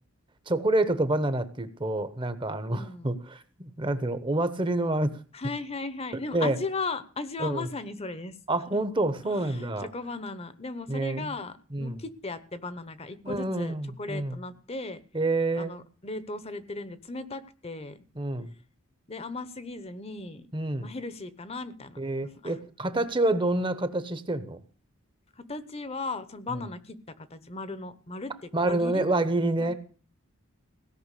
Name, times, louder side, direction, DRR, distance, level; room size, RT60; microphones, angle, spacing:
voice 1, 0.5-5.1 6.3-6.6 7.4-7.7 8.5-9.9 10.9-11.3 11.7-11.9 13.2-14.4 15.1-15.7 18.2-18.5 20.5-20.9 22.0-24.6 28.5-29.7, right 2 dB, 20° right, 12 dB, 1.0 m, -27 dB
voice 2, 2.7-3.1 5.3-8.4 8.7-8.8 9.2-15.0 15.5-18.0 19.1-20.5 20.8-22.6 25.4-27.0 27.3-29.1 29.6-29.7, left 3 dB, 30° left, 13 dB, 1.0 m, -37 dB
17.0 x 5.8 x 8.3 m, 0.41 s
head